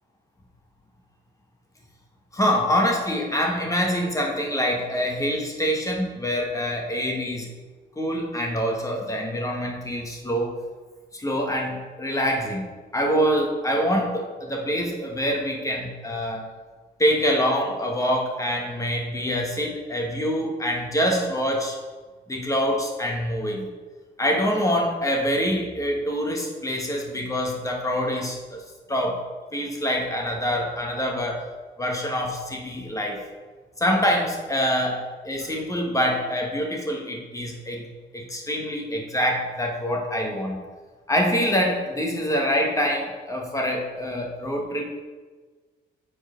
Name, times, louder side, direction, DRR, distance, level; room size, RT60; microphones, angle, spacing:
voice 1, 2.3-7.5 7.9-10.5 11.1-12.7 12.9-16.4 17.0-21.8 22.3-23.7 24.2-28.4 28.9-29.2 29.5-31.4 31.8-33.2 33.8-37.8 38.1-40.6 41.1-44.9, equal, 15° left, 0 dB, 1.4 m, -25 dB
6.8 x 4.5 x 5.1 m, 1.4 s
cardioid pair, 90°, 20 cm